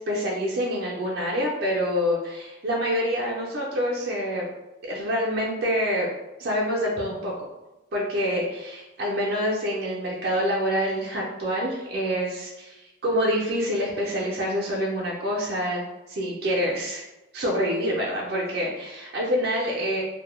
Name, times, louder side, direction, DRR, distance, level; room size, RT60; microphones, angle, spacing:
voice 1, 0.0-4.5 4.8-6.1 6.4-7.3 7.9-15.8 16.1-17.0 17.3-20.0, equal, 55° right, -4 dB, 0.4 m, -26 dB
2.1 x 2.1 x 2.9 m, 1.0 s
head